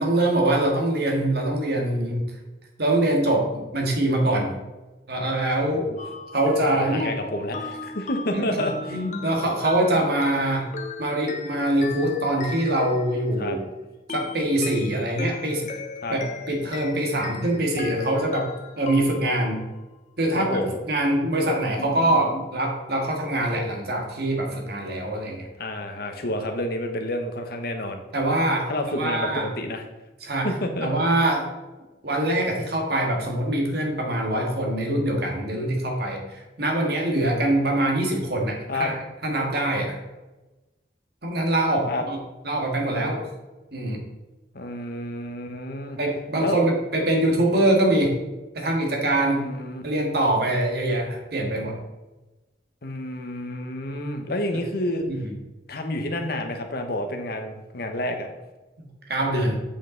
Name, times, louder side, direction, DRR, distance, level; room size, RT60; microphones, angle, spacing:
voice 1, 0.0-2.2 2.8-4.5 5.1-5.9 6.3-7.1 8.3-8.5 8.9-10.7 11.0-13.6 14.1-15.8 16.1-18.5 18.8-19.7 20.2-20.6 20.9-25.5 28.1-29.5 30.2-30.5 30.8-31.5 32.0-39.0 39.2-40.0 41.2-42.2 42.4-43.3 43.7-44.0 46.0-48.1 48.6-49.4 49.8-51.8 55.1-55.3 58.8-59.6, right 1 dB, 60° right, 1 dB, 1.8 m, -24 dB
sound 1, 6.0-13.5 14.1-19.7 21.8-22.6, left 4 dB, 45° left, 0.6 m, -38 dB
voice 2, 6.7-9.0 13.4-13.6 16.0-16.2 20.3-20.8 25.6-28.0 28.7-29.8 30.4-30.9 38.7-38.9 41.9-42.0 44.5-46.0 46.4-46.6 49.1-49.9 52.8-55.1 55.7-58.3, left 1 dB, 60° left, 5 dB, 1.1 m, -29 dB
8.4 x 5.7 x 3.9 m, 1.1 s
head